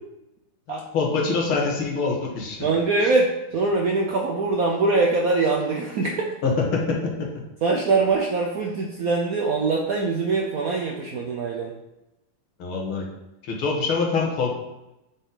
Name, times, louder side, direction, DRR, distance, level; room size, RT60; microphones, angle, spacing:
voice 1, 0.7-2.6 3.0-3.1 6.4-7.3 12.6-13.1 13.4-14.5, left 4 dB, 80° left, -1 dB, 2.2 m, -25 dB
voice 2, 2.6-6.3 7.6-11.7, right 3 dB, 70° right, 0 dB, 0.8 m, -23 dB
8.8 x 4.1 x 3.9 m, 0.94 s
omnidirectional pair, 2.3 m